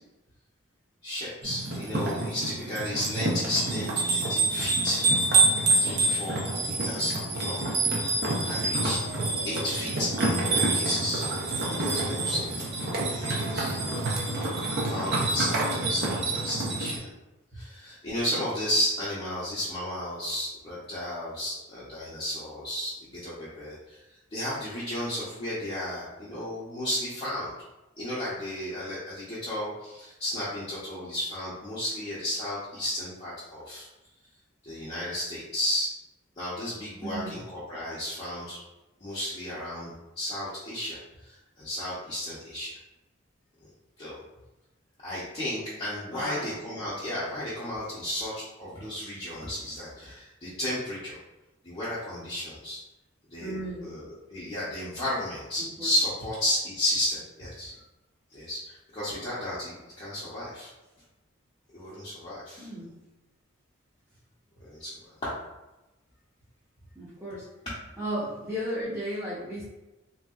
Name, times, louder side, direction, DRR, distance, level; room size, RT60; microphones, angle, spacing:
voice 1, 1.0-5.0 5.8-7.7 8.4-9.0 9.4-11.2 11.5-12.5 12.9-17.1 17.5-24.0 24.3-27.5 28.0-33.9 34.6-35.9 36.4-38.6 39.0-42.8 44.0-44.2 45.0-51.2 51.6-52.8 53.3-57.7 58.3-60.7 61.7-62.7 64.6-64.9 65.2-65.3, left 1 dB, 30° left, -10 dB, 0.6 m, -33 dB
sound 1, 1.4-17.0, right 2 dB, 50° right, 0.6 m, -27 dB
voice 2, 37.0-37.4 46.1-46.5 53.4-54.0 55.6-55.9 62.6-63.0 66.9-67.5 68.0-69.6, equal, 10° right, -10 dB, 0.6 m, -35 dB
3.2 x 2.7 x 2.3 m, 1.0 s
head